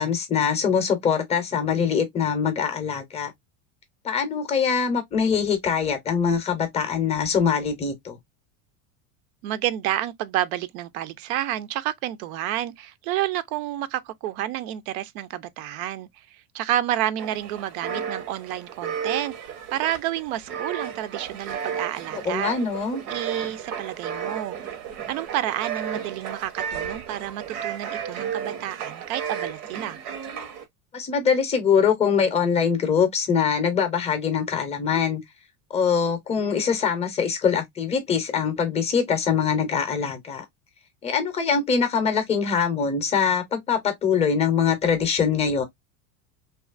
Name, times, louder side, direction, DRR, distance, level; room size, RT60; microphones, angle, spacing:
voice 1, 0.0-3.3 4.0-8.2 22.3-23.0 30.9-35.2 35.7-40.4 41.0-45.6, left 6 dB, 15° left, 0.5 m, -23 dB
voice 2, 9.4-19.3 19.7-22.5 23.1-24.6 25.1-30.0, right 12 dB, 65° right, 0.5 m, -30 dB
sound 1, 17.2-30.6, right 8 dB, 85° right, 0.9 m, -33 dB
2.8 x 2.4 x 2.3 m
supercardioid pair, 140°, 45 cm